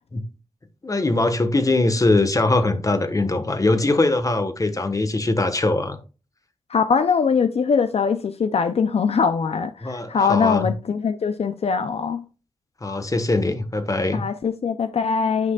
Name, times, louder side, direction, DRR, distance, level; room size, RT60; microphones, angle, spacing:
voice 1, 0.8-6.0 9.8-10.7 12.8-14.2, left 2 dB, 30° left, 1.2 m, -21 dB
voice 2, 6.7-12.2 14.1-15.5, left 5 dB, 70° left, 0.5 m, -22 dB
9.3 x 5.8 x 2.3 m
wide cardioid pair, 90°, 11 cm